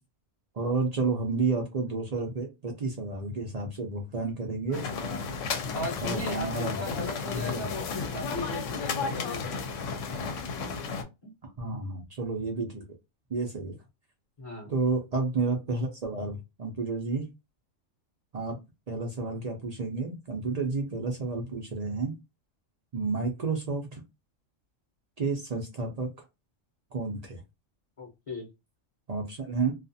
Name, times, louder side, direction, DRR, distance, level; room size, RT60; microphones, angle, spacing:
voice 1, 0.5-4.9 6.0-6.8 7.3-7.7 11.6-12.8 13.3-13.8 14.7-17.3 18.3-18.6 18.9-22.1 22.9-24.0 25.2-26.1 26.9-27.4 29.1-29.8, right 3 dB, 50° right, 1 dB, 0.5 m, -31 dB
sound 1, 4.7-11.0, left 5 dB, 75° left, 0.9 m, -33 dB
voice 2, 4.7-5.2 5.7-9.6 11.2-11.3 14.4-14.7 28.0-28.5, left 2 dB, 30° left, -1 dB, 0.8 m, -37 dB
2.4 x 2.4 x 2.6 m, 0.23 s
omnidirectional pair, 1.3 m